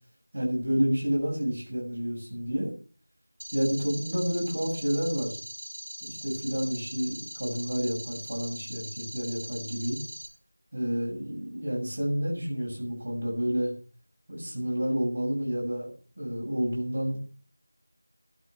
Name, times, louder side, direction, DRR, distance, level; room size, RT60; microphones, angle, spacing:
voice 1, 0.3-2.7 3.5-5.4 6.0-10.0 10.7-13.7 14.3-15.9 16.2-17.2, equal, 40° right, -3 dB, 6.9 m, -29 dB
sound 1, 3.4-10.3, equal, 75° right, 6.0 m, -41 dB
13.0 x 11.0 x 5.9 m, 0.40 s
figure-of-eight pair, 175°, 0 cm